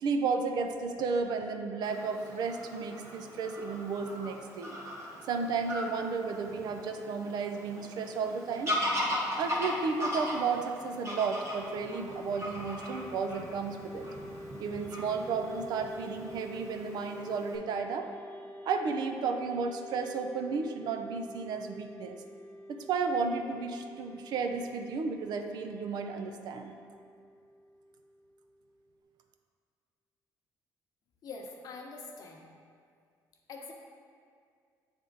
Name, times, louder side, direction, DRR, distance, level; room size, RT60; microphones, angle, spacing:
voice 1, 0.0-4.7 5.3-8.8 9.4-14.1 14.6-18.1 18.7-22.2 22.7-26.7, right 5 dB, 65° right, 5 dB, 0.5 m, -33 dB
Fowl / Bird vocalization bird call bird song, 1.8-17.6, equal, 35° right, 1.3 m, -39 dB
sound 1, 11.6-29.0, equal, 15° left, 0.4 m, -48 dB
voice 2, 31.2-32.5 33.5-33.7, left 4 dB, 55° left, 1 dB, 0.8 m, -44 dB
7.8 x 3.5 x 4.0 m, 2.2 s
cardioid pair, 110°, 8 cm